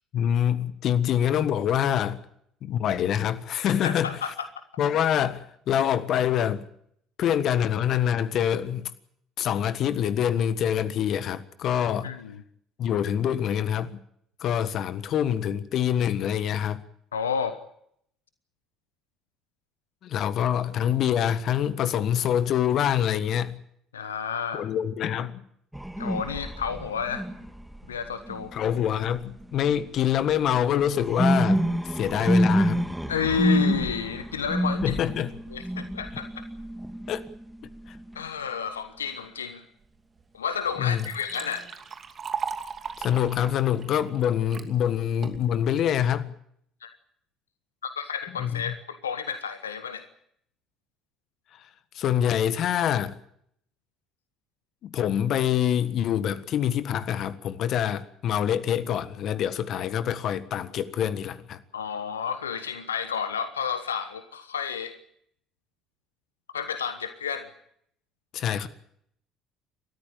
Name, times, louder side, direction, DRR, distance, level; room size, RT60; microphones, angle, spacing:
voice 1, 0.1-2.2 2.6-4.1 4.8-6.6 7.2-8.9 9.4-12.1 12.8-14.0 14.4-16.8 20.0-23.6 24.5-25.4 28.5-32.8 34.8-35.3 37.1-37.2 37.9-38.0 40.8-41.1 43.0-46.3 48.4-48.7 51.5-51.7 51.9-53.2 54.8-61.6 68.3-68.7, left 9 dB, 55° left, 1.5 m, -25 dB
voice 2, 3.8-4.5 12.0-12.4 17.1-17.6 23.9-24.7 26.0-27.2 27.9-28.5 33.1-35.0 35.5-36.4 38.1-39.6 40.3-41.7 46.8-46.9 47.8-50.1 61.7-64.9 66.5-67.5, left 7 dB, 85° left, 1.1 m, -31 dB
sound 1, 25.7-29.8 30.3-38.2 43.0-43.5, equal, 5° right, 2.7 m, -28 dB
Liquid, 40.2-40.3 40.7-44.7 45.2-45.7, right 6 dB, 40° right, 2.7 m, -37 dB
30.0 x 13.5 x 8.9 m
figure-of-eight pair, 55°, 0 cm